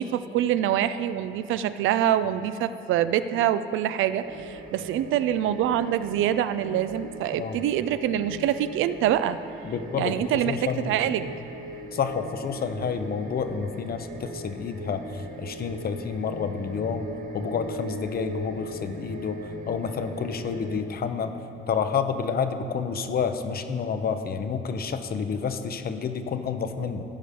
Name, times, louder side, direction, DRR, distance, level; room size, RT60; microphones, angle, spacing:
voice 1, 0.0-9.4 10.0-10.6 10.8-11.3, right 11 dB, 85° right, 13 dB, 0.4 m, -25 dB
sound 1, 4.2-20.8, right 2 dB, 45° right, 0.9 m, -40 dB
voice 2, 9.6-11.0 11.9-17.1 17.3-21.4 21.7-27.0, left 6 dB, 50° left, 8 dB, 0.7 m, -29 dB
15.5 x 5.3 x 5.0 m, 2.9 s
cardioid pair, 90°, 20 cm